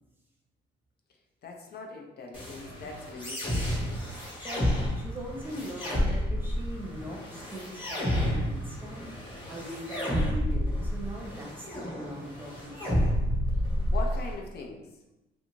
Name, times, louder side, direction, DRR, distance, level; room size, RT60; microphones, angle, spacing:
voice 1, 1.4-4.0 13.8-14.9, left 3 dB, 55° left, 2 dB, 0.5 m, -41 dB
sound 1, 2.3-14.3, equal, 25° left, 1.1 m, -30 dB
voice 2, 4.4-9.1 9.5-13.0, right 1 dB, 10° right, -2 dB, 0.7 m, -41 dB
2.5 x 2.5 x 2.9 m, 0.98 s
cardioid pair, 90°, 20 cm